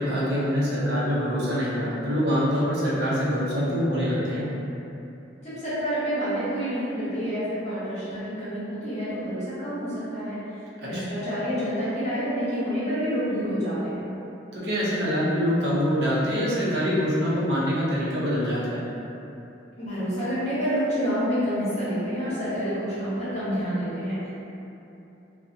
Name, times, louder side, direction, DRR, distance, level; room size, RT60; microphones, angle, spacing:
voice 1, 0.0-4.5 10.8-11.1 14.5-18.8, equal, 55° right, -8 dB, 0.5 m, -25 dB
voice 2, 5.4-10.4 10.8-14.0 19.8-24.3, equal, 35° left, -11 dB, 0.8 m, -28 dB
2.6 x 2.0 x 2.5 m, 2.9 s
head